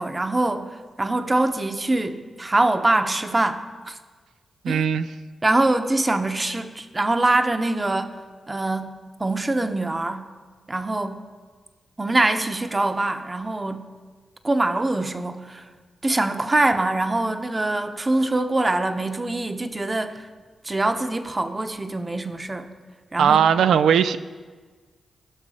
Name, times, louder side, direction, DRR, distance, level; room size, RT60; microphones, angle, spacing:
voice 1, 0.0-4.0 4.7-4.9 5.4-8.1 8.5-8.9 9.2-10.2 10.7-11.2 12.0-13.8 14.4-15.6 16.0-20.2 20.6-22.7 23.1-23.4, right 2 dB, 30° right, 1.0 m, -23 dB
voice 2, 4.6-5.1 23.2-24.2, right 8 dB, 80° right, 0.4 m, -18 dB
16.5 x 6.2 x 5.0 m
supercardioid pair, 40°, 0 cm